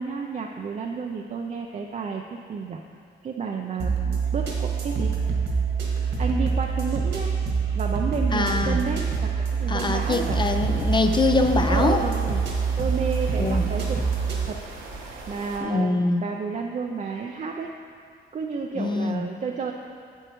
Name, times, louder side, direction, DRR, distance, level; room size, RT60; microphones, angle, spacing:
voice 1, 0.0-2.8 3.2-5.2 6.2-7.4 7.7-10.4 11.7-12.4 12.8-14.0 14.5-14.6 14.9-17.7 18.3-19.7, right 5 dB, 40° right, 2 dB, 0.4 m, -31 dB
sound 1, 3.8-14.5, right 5 dB, 65° right, 1.5 m, -25 dB
voice 2, 8.3-8.8 9.7-12.0 13.4-13.7 15.6-16.3 18.7-19.3, left 3 dB, 25° left, 6 dB, 0.4 m, -24 dB
sound 2, 10.0-15.6, right 3 dB, 80° right, 1.2 m, -40 dB
7.9 x 7.8 x 3.1 m, 2.4 s
cardioid pair, 90°, 20 cm